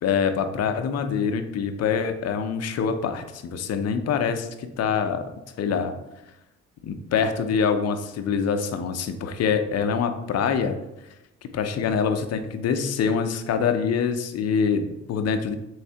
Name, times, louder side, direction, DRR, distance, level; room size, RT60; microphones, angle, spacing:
voice 1, 0.0-5.2 5.6-5.9 6.8-10.8 11.5-15.6, left 6 dB, 55° left, 8 dB, 0.6 m, -25 dB
3.5 x 3.2 x 4.4 m, 0.93 s
cardioid pair, 90°, 30 cm